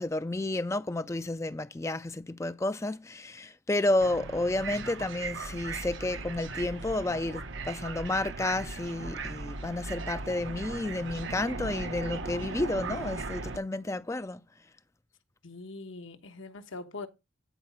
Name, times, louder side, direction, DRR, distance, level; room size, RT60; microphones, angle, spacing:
voice 1, 0.0-14.5, left 2 dB, 15° left, 0.3 m, -31 dB
sound 1, 4.0-13.6, right 3 dB, 65° right, 0.8 m, -38 dB
voice 2, 15.4-17.1, left 3 dB, 70° left, 1.1 m, -42 dB
9.1 x 4.0 x 5.7 m
head